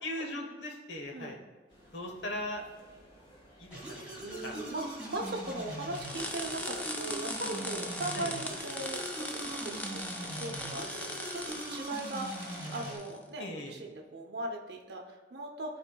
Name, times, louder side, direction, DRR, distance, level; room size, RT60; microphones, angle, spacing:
voice 1, 0.0-1.4 1.9-2.6 3.6-4.1 4.4-4.5 8.1-8.3 13.4-13.7, left 1 dB, 80° left, 2 dB, 1.1 m, -38 dB
sound 1, 1.7-6.7, equal, 30° left, 1.4 m, -58 dB
sound 2, 3.7-13.0, right 1 dB, 10° right, 1.9 m, -41 dB
voice 2, 4.2-15.8, right 2 dB, 65° right, 1 dB, 0.6 m, -39 dB
sound 3, 5.9-13.2, left 1 dB, 10° left, 0.4 m, -40 dB
11.5 x 4.2 x 2.2 m, 1.3 s
head